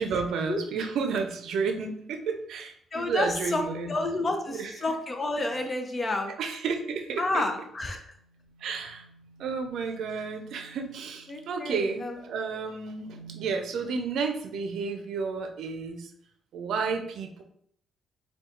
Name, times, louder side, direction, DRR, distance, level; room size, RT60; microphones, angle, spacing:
voice 1, 0.0-3.9 4.5-4.7 6.4-7.4 8.6-9.1 9.4-16.1 16.5-17.4, right 5 dB, 75° right, 5 dB, 0.5 m, -31 dB
voice 2, 2.9-6.3 7.2-8.0 11.3-12.3, left 2 dB, 30° left, 5 dB, 0.6 m, -30 dB
sound 1, 5.3-5.8 8.0-12.2 12.9-13.5, right 1 dB, 60° left, 0.8 m, -51 dB
4.2 x 2.3 x 3.8 m, 0.69 s
cardioid pair, 90°, 0 cm